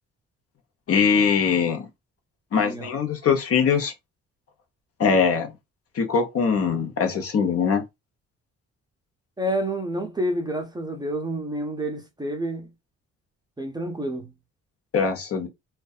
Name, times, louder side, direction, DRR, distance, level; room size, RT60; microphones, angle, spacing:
voice 1, 0.9-1.9 2.5-3.9 5.0-5.5 5.9-7.8 14.9-15.5, left 6 dB, 50° left, 0.7 m, -22 dB
voice 2, 2.6-2.9 9.4-12.7 13.6-14.3, right 1 dB, 15° right, 0.5 m, -29 dB
2.6 x 2.2 x 2.3 m
cardioid pair, 90°, 30 cm